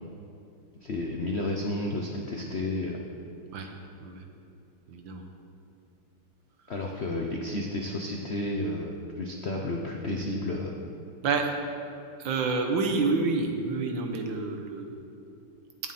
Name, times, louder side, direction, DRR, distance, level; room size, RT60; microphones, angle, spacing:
voice 1, 0.8-3.0 6.7-10.7, left 1 dB, 85° left, 0 dB, 0.5 m, -31 dB
voice 2, 4.9-5.2 11.2-11.5 12.2-15.0, right 4 dB, 65° right, 4 dB, 1.6 m, -28 dB
17.5 x 7.4 x 4.2 m, 2.6 s
omnidirectional pair, 2.4 m